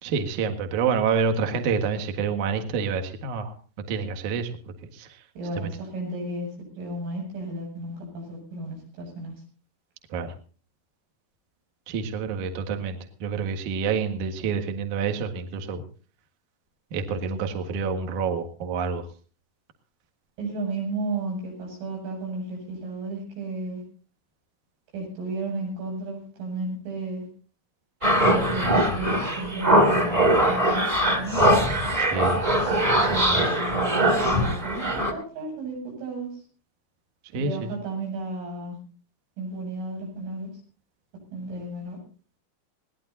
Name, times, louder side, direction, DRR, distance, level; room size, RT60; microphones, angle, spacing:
voice 1, 0.0-3.5 3.9-4.5 4.9-5.1 5.6-5.7 10.1-10.3 11.9-15.8 16.9-19.1 32.0-32.4 33.0-33.4 37.3-37.5, right 5 dB, 55° right, 5 dB, 2.4 m, -28 dB
voice 2, 5.3-6.5 6.8-9.3 20.4-23.8 24.9-27.3 28.3-30.8 31.1-31.4 33.1-36.3 37.3-38.8 39.4-40.5 41.3-42.0, right 2 dB, 85° right, 0 dB, 10.5 m, -33 dB
sound 1, 28.0-35.1, right 1 dB, 15° right, 1.4 m, -21 dB
21.5 x 18.0 x 2.8 m, 0.39 s
omnidirectional pair, 5.5 m